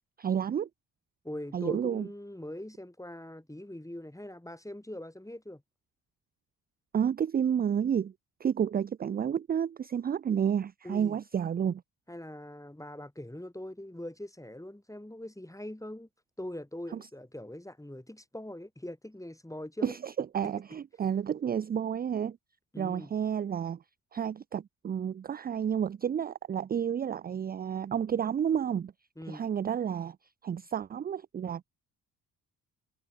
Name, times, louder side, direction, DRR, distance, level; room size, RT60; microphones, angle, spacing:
voice 1, 0.2-0.7 1.5-2.1 6.9-8.1 8.4-11.8 16.9-17.1 19.8-22.4 22.8-23.8 24.1-28.9 29.3-30.2 30.4-31.6, right 8 dB, 25° right, 0.4 m, -30 dB
voice 2, 1.2-5.6 10.8-11.2 12.1-16.1 16.4-20.0 22.7-23.1 29.2-29.4, left 1 dB, 5° left, 5.7 m, -42 dB
hypercardioid pair, 45°, 44 cm